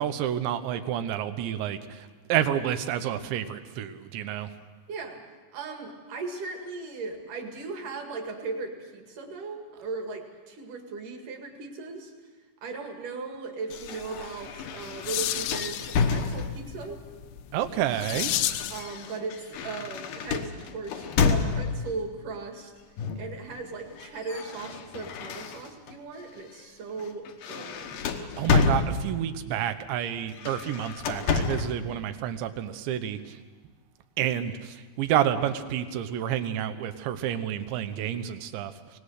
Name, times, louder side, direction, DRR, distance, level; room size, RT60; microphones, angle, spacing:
voice 1, 0.0-4.5 17.5-18.3 28.1-33.4 34.2-39.0, right 10 dB, 85° right, 10 dB, 3.3 m, -29 dB
voice 2, 4.9-5.2 5.5-12.3 12.6-17.0 18.7-22.7 23.1-28.0, right 4 dB, 50° right, 4 dB, 3.2 m, -37 dB
sound 1, 13.7-16.8 17.7-22.0 23.0-23.4 23.6-26.0 26.4-26.6 27.0-29.4 30.3-31.8, left 5 dB, 65° left, 2.3 m, -30 dB
sound 2, 14.5-18.9, left 13 dB, 80° left, 3.0 m, -33 dB
25.0 x 19.0 x 6.6 m, 1.4 s
omnidirectional pair, 5.1 m